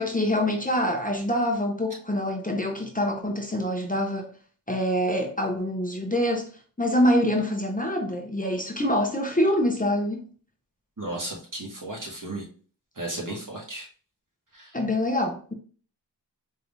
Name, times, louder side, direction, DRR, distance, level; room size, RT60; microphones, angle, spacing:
voice 1, 0.0-4.3 4.7-6.5 6.8-10.2 14.7-15.5, left 1 dB, 20° left, 0.9 m, -25 dB
voice 2, 11.0-12.4 13.0-13.9 14.5-14.7, right 2 dB, 50° right, 1.8 m, -34 dB
4.6 x 3.5 x 2.6 m
wide cardioid pair, 55°, 41 cm